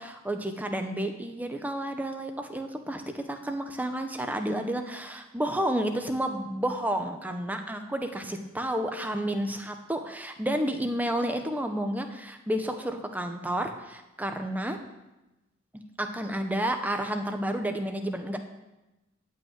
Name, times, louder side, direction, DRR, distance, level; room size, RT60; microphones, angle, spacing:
voice 1, 0.0-14.8 15.7-18.4, right 1 dB, 10° right, 5 dB, 1.0 m, -31 dB
14.5 x 5.6 x 9.1 m, 1.0 s
head